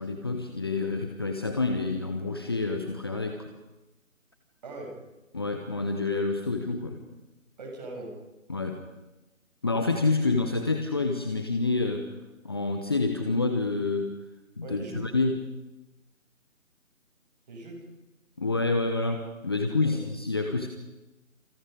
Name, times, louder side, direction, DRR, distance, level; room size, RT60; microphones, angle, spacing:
voice 1, 0.0-3.5 5.3-7.0 8.5-8.8 9.6-12.1 12.4-14.1 14.6-15.4 18.4-20.7, left 3 dB, 20° left, 5 dB, 1.1 m, -28 dB
voice 2, 4.6-5.0 7.6-8.2 14.6-15.1 17.5-17.8 19.8-20.0, right 2 dB, 30° right, 1 dB, 7.5 m, -40 dB
29.0 x 29.0 x 5.4 m, 1.0 s
figure-of-eight pair, 155°, 41 cm